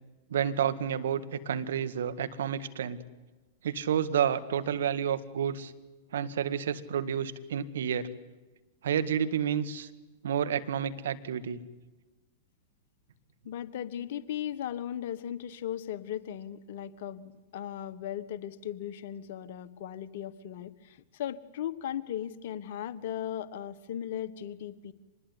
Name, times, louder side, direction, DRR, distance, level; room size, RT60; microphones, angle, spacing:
voice 1, 0.3-3.0 3.6-5.7 6.1-8.1 8.8-9.9 10.2-11.6, right 8 dB, 65° right, 10 dB, 1.9 m, -30 dB
voice 2, 13.4-24.9, left 10 dB, 55° left, 14 dB, 1.4 m, -37 dB
25.5 x 21.0 x 9.8 m, 1.2 s
figure-of-eight pair, 100°, 0 cm